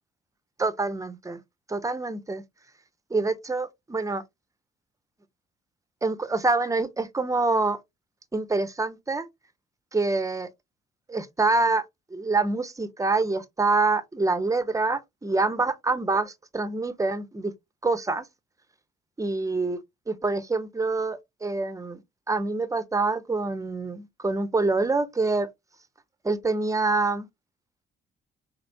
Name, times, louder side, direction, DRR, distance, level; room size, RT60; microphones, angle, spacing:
voice 1, 0.6-1.4 1.7-2.4 3.1-4.2 6.0-7.8 8.3-9.3 9.9-10.5 11.1-11.8 12.1-17.5 17.8-18.2 19.2-19.8 20.1-22.0 22.3-25.5 26.2-27.3, right 3 dB, 15° right, 0.7 m, -26 dB
4.1 x 3.3 x 2.6 m
cardioid pair, 90°, 20 cm